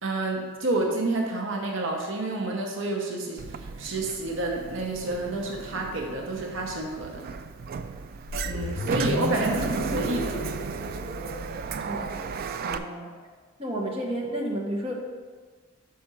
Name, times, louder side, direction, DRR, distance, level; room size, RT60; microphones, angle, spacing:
voice 1, 0.0-7.2 8.4-10.4 12.6-12.8, right 2 dB, 65° right, 0 dB, 0.8 m, -29 dB
Sliding door, 3.4-12.8, right 5 dB, 45° right, 0.3 m, -34 dB
sound 1, 8.3-12.5, left 2 dB, 40° left, 0.4 m, -35 dB
voice 2, 11.9-12.2 12.6-13.1 13.6-14.9, right 1 dB, 25° right, -2 dB, 1.0 m, -32 dB
5.6 x 4.2 x 6.1 m, 1.5 s
head